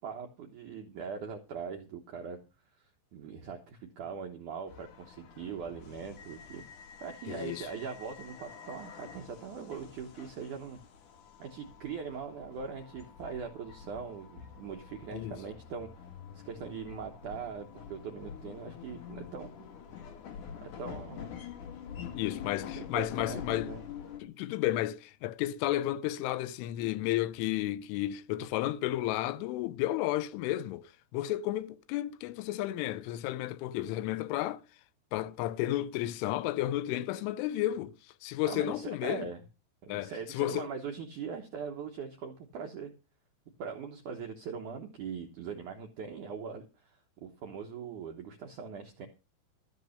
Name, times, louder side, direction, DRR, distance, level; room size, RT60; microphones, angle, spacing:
voice 1, 0.0-2.4 2.8-6.6 7.0-10.8 11.4-15.9 16.3-19.5 20.6-21.4 22.7-23.8 38.4-39.4 39.8-42.9 43.6-49.1, right 6 dB, 75° right, 1.8 m, -41 dB
sound 1, 4.7-24.2, left 7 dB, 55° left, 2.5 m, -46 dB
voice 2, 7.3-7.7 15.1-15.4 22.1-23.7 24.2-34.6 35.1-38.0 38.2-39.3 39.9-40.7, left 14 dB, 90° left, 3.2 m, -32 dB
14.0 x 7.1 x 6.5 m
omnidirectional pair, 5.4 m